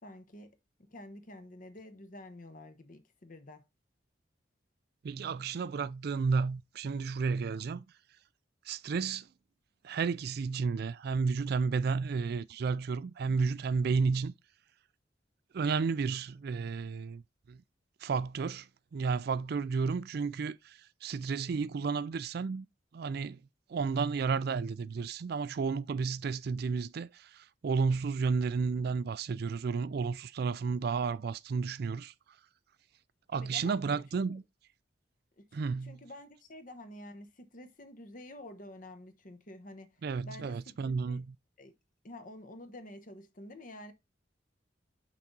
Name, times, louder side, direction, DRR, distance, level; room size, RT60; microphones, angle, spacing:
voice 1, 0.0-3.6 33.3-33.8 34.3-34.4 35.4-39.9 40.3-41.2 41.6-41.7 42.0-43.9, left 1 dB, 45° left, 1.1 m, -49 dB
voice 2, 5.0-7.8 8.7-9.3 9.8-14.3 15.5-17.2 17.5-17.6 18.0-18.7 18.9-22.7 22.9-23.4 23.7-32.1 33.3-34.4 35.5-36.0 40.0-41.3, right 5 dB, 60° right, 0.4 m, -32 dB
5.9 x 4.0 x 6.0 m
head